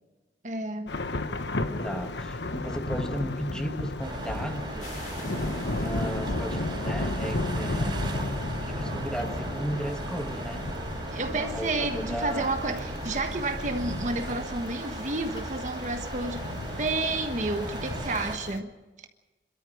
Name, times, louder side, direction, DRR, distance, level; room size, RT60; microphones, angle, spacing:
voice 1, 0.4-0.9 11.1-16.4 16.8-18.7, right 2 dB, 45° right, 1.4 m, -30 dB
Thunder / Rain, 0.9-18.6, left 2 dB, 85° left, 1.2 m, -34 dB
voice 2, 1.8-5.0 5.8-8.2 8.6-10.7 11.3-12.6, equal, 5° left, 1.5 m, -35 dB
sound 1, 4.0-18.4, right 1 dB, 25° right, 4.4 m, -36 dB
sound 2, 4.8-8.1, left 3 dB, 45° left, 7.5 m, -49 dB
26.5 x 13.5 x 7.9 m
head